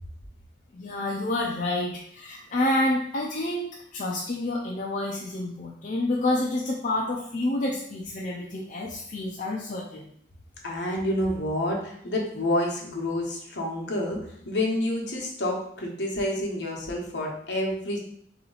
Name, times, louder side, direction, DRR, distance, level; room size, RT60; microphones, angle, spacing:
voice 1, 0.7-3.7 3.9-10.1, left 1 dB, 45° left, -2 dB, 0.5 m, -28 dB
voice 2, 10.6-14.2 14.4-18.0, left 1 dB, 65° left, -1 dB, 1.1 m, -28 dB
3.9 x 3.0 x 3.9 m, 0.67 s
head